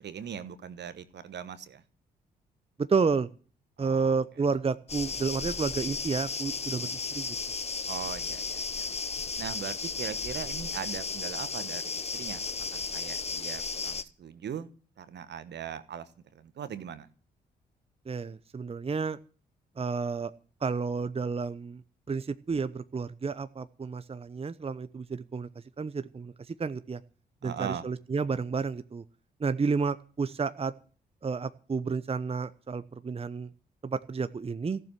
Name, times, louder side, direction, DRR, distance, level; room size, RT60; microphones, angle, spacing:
voice 1, 0.0-1.8 3.8-4.2 7.9-8.9 9.4-12.4 12.7-14.7 15.0-17.1 27.4-27.9, right 8 dB, 55° right, 1.3 m, -40 dB
voice 2, 2.8-3.3 3.8-7.4 18.1-19.2 19.8-20.3 20.6-21.8 22.1-27.0 27.4-29.0 29.4-30.7 31.2-33.5 33.8-34.8, right 5 dB, 30° right, 0.9 m, -31 dB
sound 1, 4.9-14.0, left 4 dB, 30° left, 1.2 m, -34 dB
15.0 x 7.5 x 9.8 m
hypercardioid pair, 40°, 21 cm